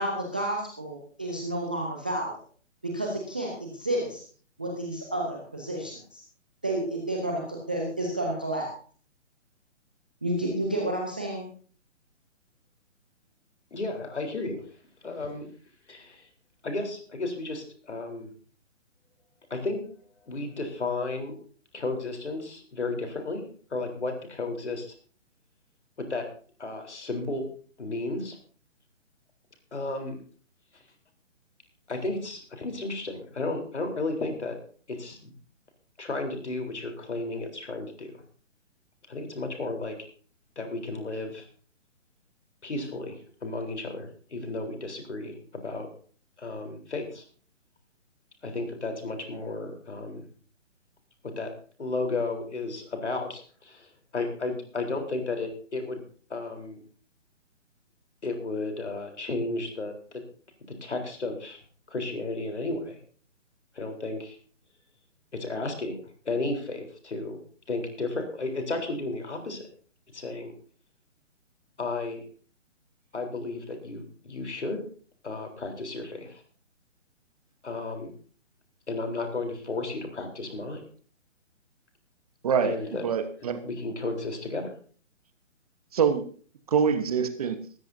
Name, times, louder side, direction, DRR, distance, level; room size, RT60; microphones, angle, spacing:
voice 1, 0.0-2.3 2.8-4.2 4.6-6.2 6.6-8.7 10.2-11.5, right 1 dB, 10° right, -1 dB, 0.5 m, -30 dB
voice 2, 13.7-14.7 15.0-15.5 15.9-16.3 16.6-18.3 19.5-19.8 20.3-21.4 21.7-23.4 23.7-24.9 26.0-26.3 26.6-27.5 27.8-28.4 29.7-30.2 31.9-34.6 34.9-35.3 36.0-38.1 39.1-40.0 40.6-41.5 42.6-45.9 46.4-47.2 48.4-50.2 51.2-51.5 51.8-56.0 56.3-56.8 58.2-60.2 60.7-61.6 61.9-63.0 63.7-64.4 65.3-66.0 66.3-67.4 67.7-69.7 70.1-70.5 71.8-72.2 73.1-74.8 75.2-76.4 77.6-78.1 78.9-80.8 82.6-83.0 83.6-84.7, left 2 dB, 60° left, 4 dB, 4.0 m, -33 dB
voice 3, 82.4-82.8 83.0-83.6 85.9-86.2 86.7-87.6, right 7 dB, 30° right, 10 dB, 1.1 m, -24 dB
18.5 x 13.5 x 2.7 m, 0.43 s
figure-of-eight pair, 140°, 38 cm